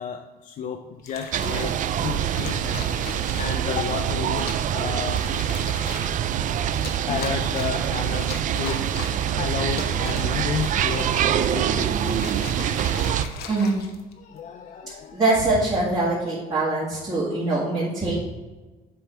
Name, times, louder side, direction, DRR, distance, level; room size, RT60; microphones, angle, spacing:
voice 1, 0.0-1.8 2.0-2.6 3.4-5.3 5.6-5.7 6.6-8.9 9.4-12.5 12.9-13.8 14.2-15.2, left 7 dB, 50° left, 5 dB, 0.5 m, -32 dB
sound 1, 1.0-1.8 2.4-3.7 4.3-4.7 5.1-6.2 6.7-7.8 8.2-9.3 9.6-11.5 12.0-14.4 15.1-15.4, left 6 dB, 70° left, 0.9 m, -38 dB
sound 2, 1.3-13.2, right 9 dB, 50° right, 0.4 m, -25 dB
voice 2, 13.5-13.8 15.1-18.1, right 2 dB, 25° right, -9 dB, 1.8 m, -23 dB
7.6 x 3.5 x 4.4 m, 1.2 s
cardioid pair, 110°, 17 cm